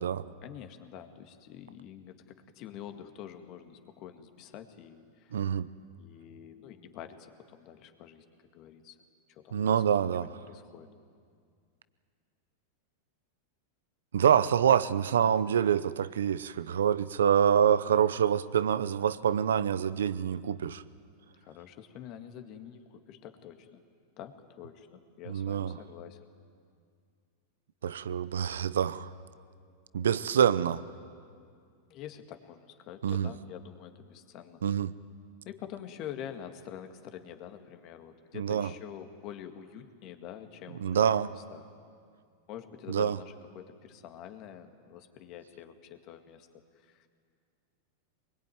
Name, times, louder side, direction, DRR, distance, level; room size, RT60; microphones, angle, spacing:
voice 1, 0.4-5.4 6.0-8.2 8.5-9.0 9.3-10.9 21.4-23.8 24.2-26.3 31.9-34.6 35.5-41.8 42.5-47.1, left 9 dB, 45° left, 7 dB, 2.0 m, -46 dB
voice 2, 5.3-5.7 9.5-10.3 14.1-20.8 25.3-25.7 27.8-29.1 29.9-30.8 33.0-33.3 34.6-34.9 38.4-38.7 40.8-41.3 42.9-43.2, right 8 dB, 85° right, 17 dB, 0.7 m, -26 dB
23.5 x 21.0 x 9.4 m, 2.2 s
hypercardioid pair, 110°, 0 cm